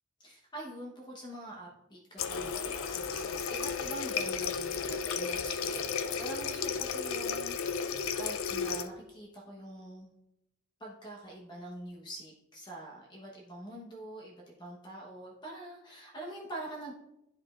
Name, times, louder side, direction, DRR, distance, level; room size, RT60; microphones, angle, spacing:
voice 1, 0.2-10.1 10.8-16.9, right 1 dB, 20° left, -2 dB, 0.9 m, -45 dB
Water tap faucet, 2.2-8.9, left 6 dB, 70° left, 0.5 m, -33 dB
10.5 x 5.0 x 2.4 m, 0.88 s
head